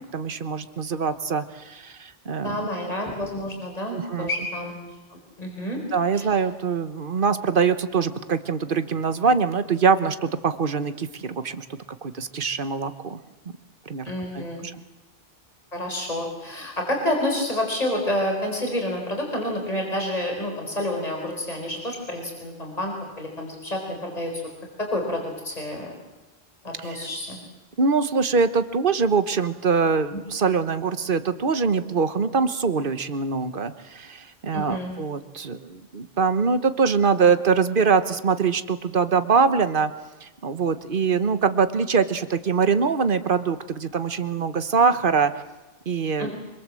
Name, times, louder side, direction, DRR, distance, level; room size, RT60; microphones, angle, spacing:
voice 1, 0.1-2.7 3.9-4.3 5.9-11.6 12.0-13.2 13.9-14.4 26.8-27.0 27.8-39.9 40.2-45.3 45.9-46.3, right 5 dB, 55° right, 11 dB, 1.3 m, -23 dB
voice 2, 2.4-4.8 5.1-5.8 6.1-6.3 14.1-14.7 15.7-24.4 24.8-26.0 26.6-27.4 34.5-34.9 46.2-46.4, left 1 dB, 40° left, 1 dB, 4.7 m, -29 dB
25.5 x 23.0 x 7.7 m, 1.1 s
omnidirectional pair, 1.1 m